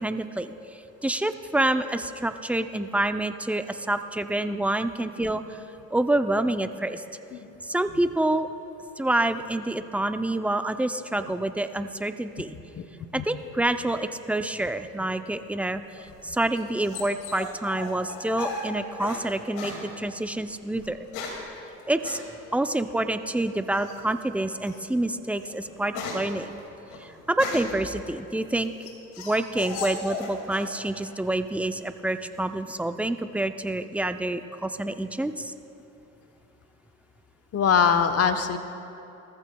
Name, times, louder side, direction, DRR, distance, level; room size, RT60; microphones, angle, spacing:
voice 1, 0.0-5.6 5.9-7.0 7.6-8.5 9.0-12.6 13.1-21.1 21.9-22.2 22.5-26.5 27.0-28.9 29.2-35.5, right 1 dB, 5° right, 9 dB, 0.5 m, -27 dB
sound 1, 16.0-19.2 19.5-19.8 20.8-21.5 22.0-22.2 23.7-24.1 24.6-24.8 25.2-27.8 28.4-30.7 31.0-31.6, left 3 dB, 80° left, 2.3 m, -36 dB
voice 2, 37.5-38.6, left 7 dB, 40° left, 8 dB, 1.0 m, -22 dB
19.0 x 14.5 x 2.3 m, 2.9 s
supercardioid pair, 75°, 36 cm